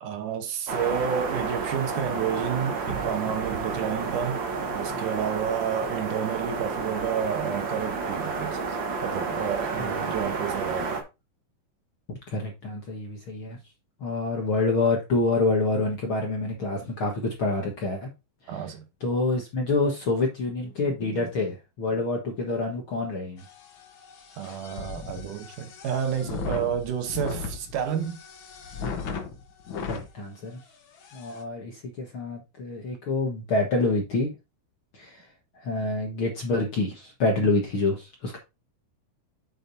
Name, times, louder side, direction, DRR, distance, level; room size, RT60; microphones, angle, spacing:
voice 1, 0.0-4.4 4.7-11.0 18.5-18.8 24.4-28.2, right 8 dB, 70° right, 2.5 m, -30 dB
sound 1, 0.7-11.0, right 4 dB, 50° right, 1.4 m, -30 dB
voice 2, 9.8-10.1 12.1-13.6 14.0-18.1 18.5-18.6 19.0-23.4 29.9-30.6 31.1-34.3 34.9-35.3 35.5-38.4, left 2 dB, 50° left, 1.7 m, -27 dB
sound 2, 23.4-30.1 30.6-30.7 31.0-31.4, left 5 dB, 75° left, 1.1 m, -37 dB
8.1 x 7.6 x 2.7 m
omnidirectional pair, 4.0 m